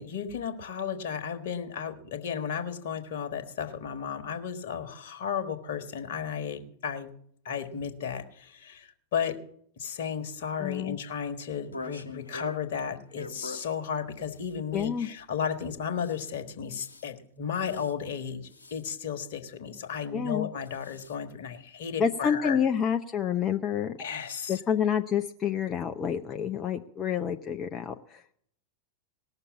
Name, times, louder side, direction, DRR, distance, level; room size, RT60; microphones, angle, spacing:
voice 1, 0.0-7.1 7.4-9.4 9.8-22.6 24.0-24.6, left 7 dB, 55° left, 8 dB, 1.5 m, -34 dB
voice 2, 10.6-11.0 14.7-15.1 20.1-20.5 22.0-23.9 24.5-28.2, left 8 dB, 25° left, 5 dB, 0.6 m, -28 dB
sound 1, 11.5-12.6 13.1-13.7 14.4-14.5 16.0-16.3 16.7-17.0 17.6-17.9 18.5-18.8 20.6-21.2, left 2 dB, 75° left, 1.4 m, -43 dB
18.5 x 6.7 x 8.3 m, 0.67 s
figure-of-eight pair, 90°, 0 cm